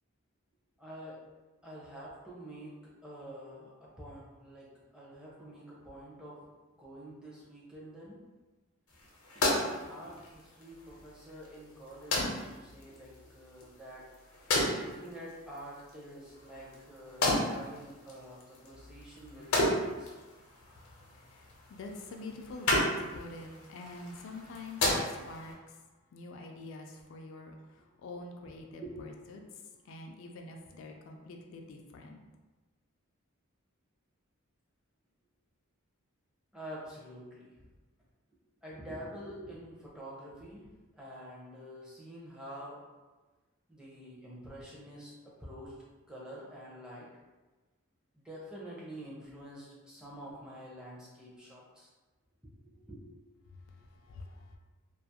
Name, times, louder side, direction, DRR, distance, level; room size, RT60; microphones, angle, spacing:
voice 1, 0.8-1.2 1.6-8.2 9.3-14.1 14.5-20.1 28.8-29.0 36.5-37.7 38.6-42.8 43.7-47.1 48.1-51.9 52.6-53.0 53.4-53.5, right 1 dB, 5° right, -6 dB, 0.5 m, -47 dB
sound 1, 8.9-25.5, left 1 dB, 85° left, 0.7 m, -35 dB
voice 2, 20.7-25.8 26.1-32.2 53.5-54.6, left 2 dB, 65° left, 2 dB, 0.3 m, -47 dB
2.4 x 2.3 x 2.7 m, 1.2 s
head